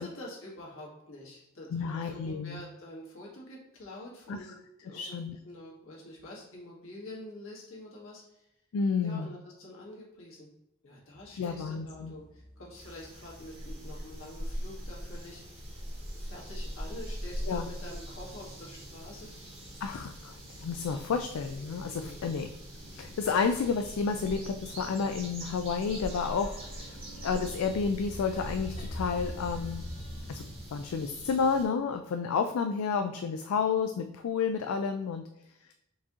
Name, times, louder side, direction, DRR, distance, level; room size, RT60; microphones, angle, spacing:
voice 1, 0.0-4.5 4.8-8.2 9.0-10.5 10.8-15.4 16.1-19.3 22.0-22.3, left 1 dB, 70° left, -4 dB, 1.6 m, -46 dB
voice 2, 1.7-2.6 4.3-4.4 4.9-5.4 8.7-9.3 11.4-12.1 17.5-17.7 19.8-22.5 22.9-26.9 27.2-29.8 30.3-30.4 30.7-35.3, left 5 dB, 85° left, 6 dB, 0.3 m, -31 dB
sound 1, 11.2-17.8 18.1-19.2 19.7-19.8 20.1-20.2 20.5-22.3 22.6-30.6, left 1 dB, 35° left, 0.6 m, -46 dB
sound 2, 12.7-31.7, equal, 30° right, 1.0 m, -42 dB
4.7 x 2.9 x 3.6 m, 0.87 s
head